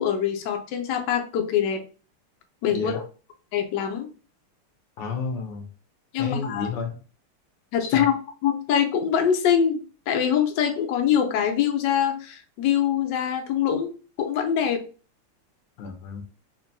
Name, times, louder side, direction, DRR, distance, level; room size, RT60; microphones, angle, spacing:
voice 1, 0.0-1.8 2.6-3.0 3.5-4.1 6.1-6.7 7.7-8.1 8.4-9.8 10.1-13.9 14.2-14.8, left 8 dB, 70° left, 5 dB, 1.1 m, -23 dB
voice 2, 5.0-5.7 6.2-7.0 7.9-8.1 15.8-16.2, left 5 dB, 85° left, 4 dB, 1.8 m, -30 dB
4.4 x 2.5 x 2.6 m, 0.36 s
omnidirectional pair, 2.4 m